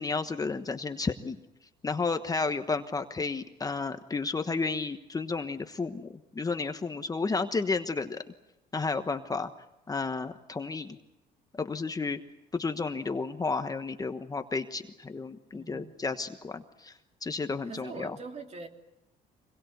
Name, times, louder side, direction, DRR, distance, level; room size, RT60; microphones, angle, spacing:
voice 1, 0.0-1.4 1.8-8.2 8.7-9.5 9.9-11.0 11.5-12.2 12.5-18.2, left 4 dB, 20° left, 8 dB, 1.2 m, -32 dB
voice 2, 15.5-15.9 17.7-18.7, right 3 dB, 40° right, 4 dB, 3.3 m, -42 dB
25.5 x 21.5 x 8.0 m, 0.92 s
cardioid pair, 110°, 17 cm